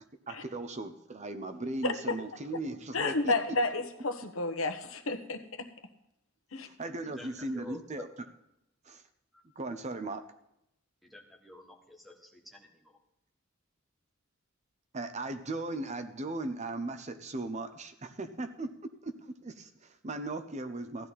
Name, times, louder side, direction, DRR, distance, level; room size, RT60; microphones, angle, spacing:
voice 1, 0.3-3.3 6.6-8.1 8.8-9.0 9.6-10.2 14.9-18.7 19.0-21.1, right 2 dB, 35° right, 9 dB, 0.8 m, -37 dB
voice 2, 1.8-2.2 2.9-5.7 6.5-6.7, left 2 dB, 85° left, 8 dB, 1.2 m, -31 dB
voice 3, 7.2-8.0 9.3-9.4 11.0-13.0, left 2 dB, ahead, 2 dB, 1.7 m, -49 dB
15.0 x 10.5 x 4.2 m, 0.80 s
head